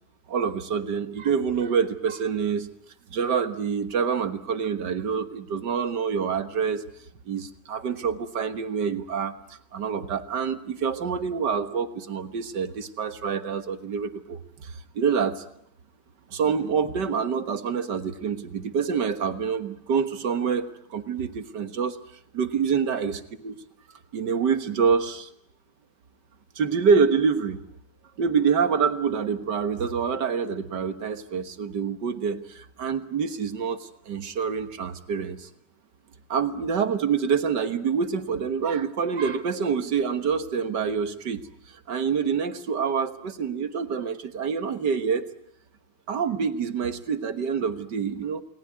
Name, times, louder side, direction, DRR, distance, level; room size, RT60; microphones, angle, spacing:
voice 1, 0.3-2.7 3.1-6.8 7.3-9.3 9.7-15.4 16.3-22.0 22.3-23.6 24.1-25.3 26.6-27.6 28.2-35.5 36.3-41.4 41.7-45.3 46.1-48.4, right 6 dB, 55° right, 11 dB, 1.9 m, -26 dB
29.0 x 20.0 x 9.6 m, 0.74 s
omnidirectional pair, 2.3 m